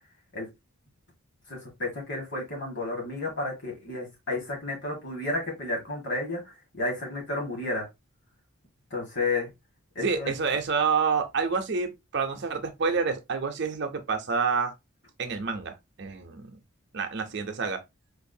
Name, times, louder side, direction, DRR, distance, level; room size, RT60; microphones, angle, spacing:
voice 1, 1.5-6.4 6.7-7.8 8.9-9.5 9.9-10.3, left 2 dB, 55° left, 1.7 m, -31 dB
voice 2, 10.0-14.7 15.2-16.6 16.9-17.8, right 5 dB, 50° right, 0.6 m, -28 dB
4.6 x 2.5 x 2.6 m
head